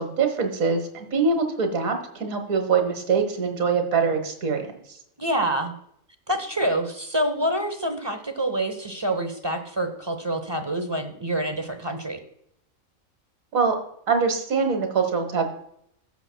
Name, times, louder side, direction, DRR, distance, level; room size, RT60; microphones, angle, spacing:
voice 1, 0.0-5.0 13.5-13.8 14.1-15.5, right 5 dB, 85° right, 5 dB, 1.8 m, -24 dB
voice 2, 5.2-5.7 6.3-12.2, right 1 dB, 20° right, 7 dB, 0.8 m, -27 dB
16.0 x 7.3 x 2.2 m, 0.71 s
omnidirectional pair, 1.4 m